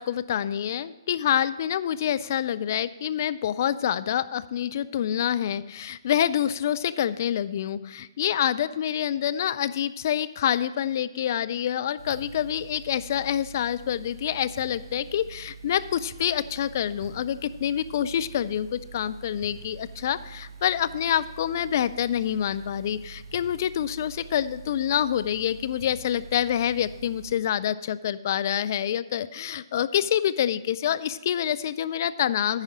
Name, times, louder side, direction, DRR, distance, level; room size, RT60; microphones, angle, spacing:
voice 1, 0.0-32.6, left 10 dB, 40° left, 14 dB, 0.4 m, -27 dB
sound 1, 12.0-27.3, right 4 dB, 50° right, 1.4 m, -45 dB
9.7 x 4.9 x 7.3 m, 1.1 s
figure-of-eight pair, 135°, 3 cm